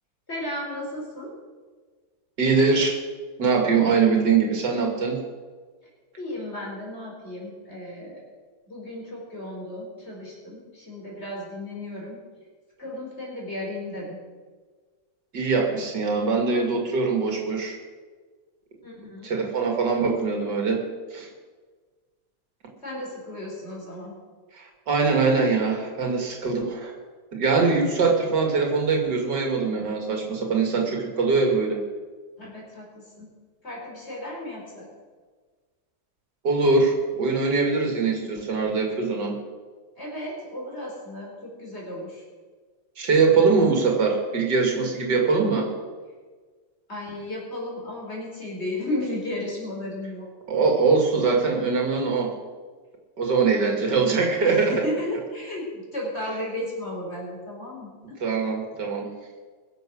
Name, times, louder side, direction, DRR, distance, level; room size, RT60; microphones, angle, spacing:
voice 1, 0.3-1.3 6.2-8.2 8.7-12.2 12.8-14.2 18.8-19.3 22.8-24.2 32.4-33.3 33.6-34.9 40.0-42.2 46.9-50.3 54.4-58.2, left 1 dB, 40° left, -3 dB, 4.7 m, -34 dB
voice 2, 2.4-3.0 3.4-5.2 15.3-17.8 19.2-20.8 21.1-21.3 24.6-26.9 27.3-31.8 36.4-39.3 43.0-45.7 50.5-52.3 53.2-54.7 58.2-59.1, right 4 dB, 90° right, 1 dB, 2.9 m, -22 dB
22.0 x 7.6 x 6.3 m, 1.5 s
omnidirectional pair, 1.8 m